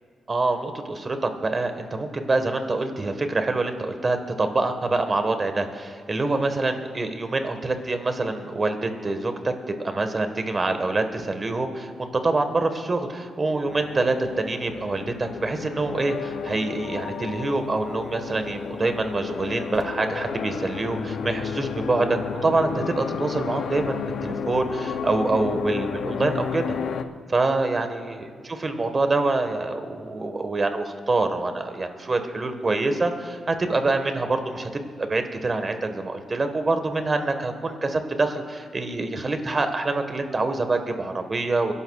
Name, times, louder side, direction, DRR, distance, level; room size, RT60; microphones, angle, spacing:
voice 1, 0.3-26.8 27.3-34.7 35.0-41.7, right 2 dB, 35° right, 7 dB, 1.4 m, -26 dB
sound 1, 13.6-27.0, left 6 dB, 75° left, 0.5 m, -32 dB
29.0 x 11.5 x 2.4 m, 2.1 s
cardioid pair, 70°, 0 cm